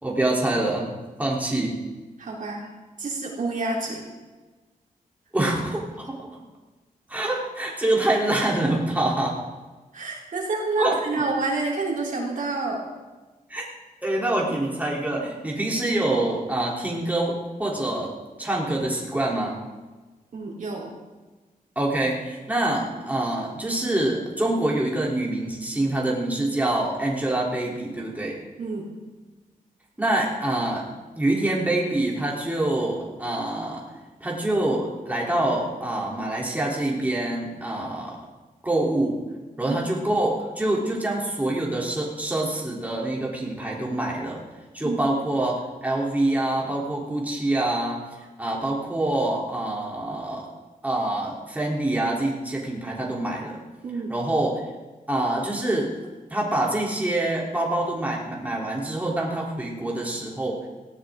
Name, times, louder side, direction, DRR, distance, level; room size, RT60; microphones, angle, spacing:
voice 1, 0.0-0.9 1.2-1.8 5.3-6.3 7.1-9.4 10.8-10.9 13.5-13.6 14.0-18.1 18.4-19.6 21.7-28.4 30.0-30.8 31.1-33.8 34.2-38.2 38.6-39.2 39.6-44.4 44.7-48.1 48.4-50.5 50.8-53.6 54.1-54.6 55.1-56.0 56.3-60.6, right 1 dB, 10° right, -4 dB, 3.4 m, -25 dB
voice 2, 2.2-2.7 3.0-4.1 9.9-12.9 20.3-20.9 28.6-28.9 39.6-39.8 44.8-45.0 53.8-54.1, right 3 dB, 60° right, -2 dB, 3.7 m, -28 dB
18.5 x 15.5 x 3.8 m, 1.2 s
wide cardioid pair, 120°, 15 cm